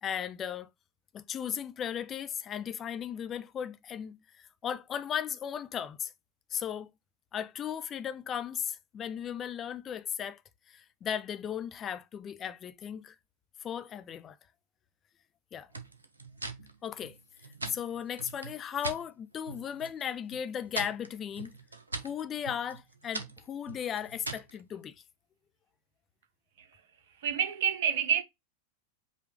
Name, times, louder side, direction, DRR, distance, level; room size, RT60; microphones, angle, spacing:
voice 1, 0.0-0.7 1.1-6.1 6.5-6.9 7.3-10.4 10.7-13.1 13.6-14.4 15.5-15.7 16.8-17.2 17.7-21.6 22.0-24.9, left 8 dB, 25° left, 0.5 m, -36 dB
sound 1, 15.7-19.0 19.4-20.0 20.3-24.6, right 3 dB, 75° right, 0.9 m, -41 dB
voice 2, 27.2-28.2, right 8 dB, 55° right, 1.0 m, -27 dB
5.4 x 2.4 x 3.8 m
figure-of-eight pair, 90°, 0 cm